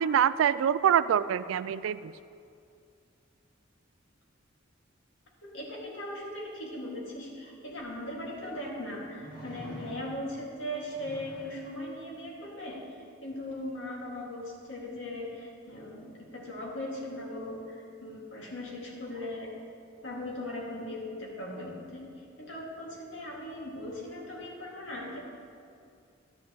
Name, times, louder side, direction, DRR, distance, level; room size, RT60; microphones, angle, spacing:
voice 1, 0.0-2.1, right 9 dB, 85° right, 16 dB, 0.3 m, -25 dB
voice 2, 5.5-12.8 13.2-19.5 20.0-22.1 22.4-25.2, left 1 dB, 70° left, -3 dB, 2.1 m, -39 dB
sound 1, 7.8-7.9 9.1-10.4 10.9-11.6 13.5-13.6, right 1 dB, 45° left, 2.5 m, -46 dB
12.0 x 10.5 x 3.0 m, 2.5 s
head